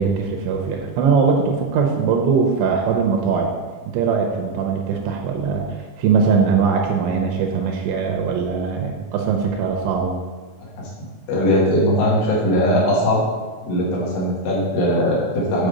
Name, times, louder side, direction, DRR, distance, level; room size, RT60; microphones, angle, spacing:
voice 1, 0.0-3.5 3.9-10.2, right 5 dB, 80° right, 2 dB, 2.9 m, -21 dB
voice 2, 11.3-13.2 13.7-15.7, equal, 65° left, -5 dB, 4.0 m, -19 dB
8.8 x 6.0 x 5.1 m, 1.4 s
omnidirectional pair, 5.7 m